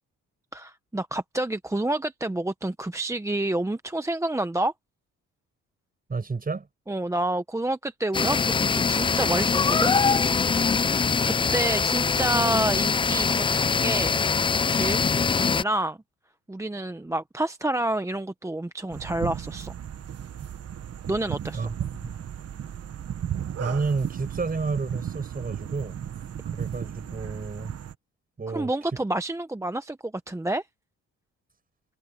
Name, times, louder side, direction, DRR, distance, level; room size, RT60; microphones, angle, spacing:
voice 1, 0.5-4.7 6.9-9.9 10.8-14.2 14.7-16.0 16.5-19.7 21.1-21.7 28.5-30.6, right 1 dB, 10° right, 1.0 m, -29 dB
voice 2, 6.1-6.7 21.5-21.7 22.0-22.2 23.6-26.0 26.5-27.7 28.4-29.0, right 4 dB, 30° right, 6.3 m, -30 dB
sound 1, 8.1-15.6, left 5 dB, 20° left, 0.3 m, -23 dB
sound 2, 18.9-28.0, right 9 dB, 55° right, 1.4 m, -35 dB
cardioid pair, 90°, 30 cm